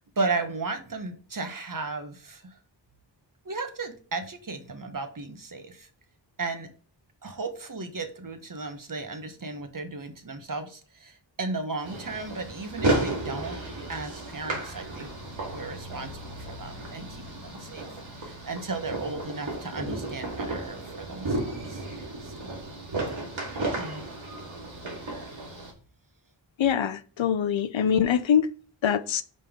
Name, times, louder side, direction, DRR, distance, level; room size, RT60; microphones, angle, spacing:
voice 1, 0.0-2.5 3.4-5.9 6.4-6.7 7.2-13.6 13.9-15.1 15.5-17.9 18.2-21.8 22.2-22.6 23.6-24.0, right 3 dB, 45° right, 1.1 m, -35 dB
sound 1, 11.8-25.7, right 2 dB, 90° right, 1.9 m, -33 dB
voice 2, 26.6-28.5 28.8-29.2, left 8 dB, 90° left, 0.6 m, -24 dB
5.3 x 5.3 x 3.6 m
wide cardioid pair, 80°, 45 cm